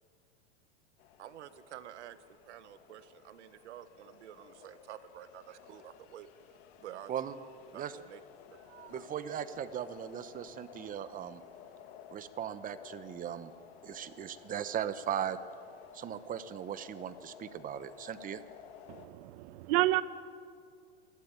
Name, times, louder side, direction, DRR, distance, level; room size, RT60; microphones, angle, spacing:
sound 1, 1.0-19.1, left 9 dB, 65° left, 1.8 m, -55 dB
voice 1, 1.2-2.2 2.5-6.3 6.8-7.1 7.7-8.2 8.5-9.1, right 11 dB, 85° right, 12 dB, 1.3 m, -49 dB
voice 2, 8.9-11.4 12.1-13.5 13.8-15.4 15.9-18.4, right 9 dB, 25° right, 12 dB, 1.0 m, -38 dB
voice 3, 18.9-20.0, right 17 dB, 60° right, 15 dB, 1.0 m, -30 dB
28.0 x 12.0 x 9.0 m, 2.3 s
supercardioid pair, 130°, 34 cm